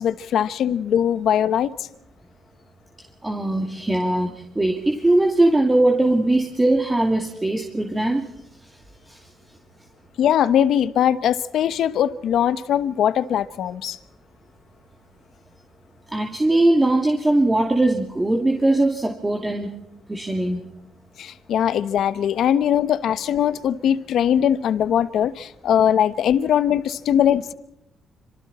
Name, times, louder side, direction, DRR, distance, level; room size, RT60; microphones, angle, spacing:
voice 1, 0.0-1.7 10.2-14.0 21.2-27.5, left 9 dB, 70° left, 1.1 m, -21 dB
voice 2, 3.2-8.3 9.1-9.2 16.1-19.7 20.1-20.6, right 2 dB, 15° right, 2.7 m, -20 dB
28.0 x 26.0 x 4.3 m
cardioid pair, 90°, 0 cm